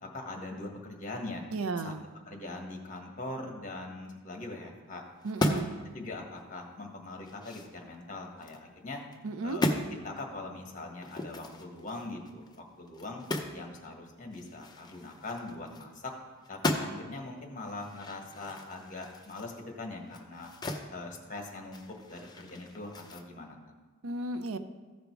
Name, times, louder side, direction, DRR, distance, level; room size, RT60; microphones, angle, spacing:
voice 1, 0.0-1.4 1.8-1.9 2.3-5.0 5.4-9.0 9.4-13.2 13.5-16.1 16.5-20.5 20.9-21.8 22.1-23.6, left 2 dB, 40° left, 2 dB, 1.5 m, -42 dB
voice 2, 1.5-2.0 5.2-5.7 9.2-9.6 24.0-24.6, right 3 dB, 85° right, 11 dB, 0.6 m, -34 dB
sound 1, 5.2-5.8 6.3-6.4 6.9-8.6 9.0-9.2 9.5-9.9 11.0-13.7 13.9-14.0 14.3-16.1 16.4-17.2 17.6-20.9 21.2-23.2, left 1 dB, 20° left, 0.7 m, -36 dB
14.5 x 5.2 x 4.6 m, 1.3 s
head